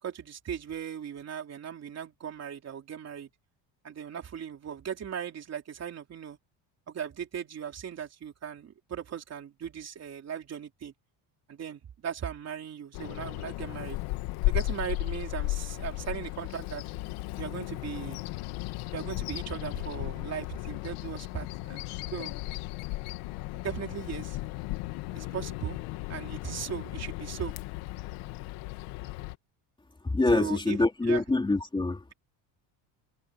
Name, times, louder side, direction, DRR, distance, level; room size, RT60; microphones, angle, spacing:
voice 1, 0.0-3.3 3.8-6.4 6.9-10.9 11.5-14.0 14.5-16.8 17.4-18.2 18.9-22.3 23.5-24.4 25.1-25.8 26.1-27.5 30.3-30.8 31.0-31.2, right 8 dB, 30° right, 3.5 m, -38 dB
Bird vocalization bird call bird song, 12.9-29.3, left 19 dB, 85° left, 2.1 m, -35 dB
voice 2, 30.1-32.0, left 2 dB, 10° left, 3.4 m, -25 dB
cardioid pair, 165°, 48 cm